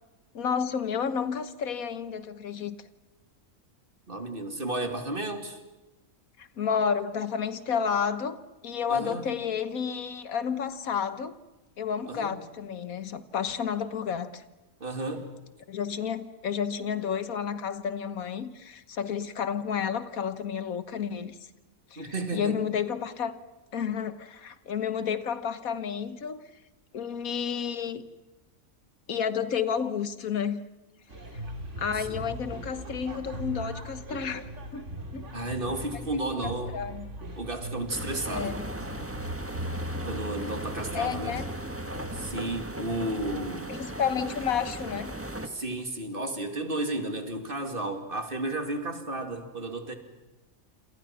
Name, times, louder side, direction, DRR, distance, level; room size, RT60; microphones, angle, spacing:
voice 1, 0.3-2.8 6.4-11.4 11.8-14.4 15.7-21.4 21.9-22.0 22.3-23.4 23.7-26.4 26.9-28.0 29.1-30.6 31.8-34.4 34.7-34.9 35.1-35.3 36.4-37.1 38.3-38.7 40.9-41.5 43.7-45.1, left 7 dB, 85° left, 12 dB, 1.7 m, -31 dB
voice 2, 4.1-5.6 8.9-9.2 12.1-12.4 14.8-15.3 22.0-22.6 32.1-32.2 35.3-36.7 37.4-38.6 40.0-41.4 42.1-43.8 45.4-49.9, right 2 dB, 40° right, 6 dB, 2.8 m, -33 dB
sound 1, 31.1-42.4, equal, 60° right, 3.2 m, -39 dB
sound 2, 37.9-45.5, right 1 dB, 10° right, 1.5 m, -37 dB
27.5 x 27.5 x 6.0 m, 1.1 s
omnidirectional pair, 1.4 m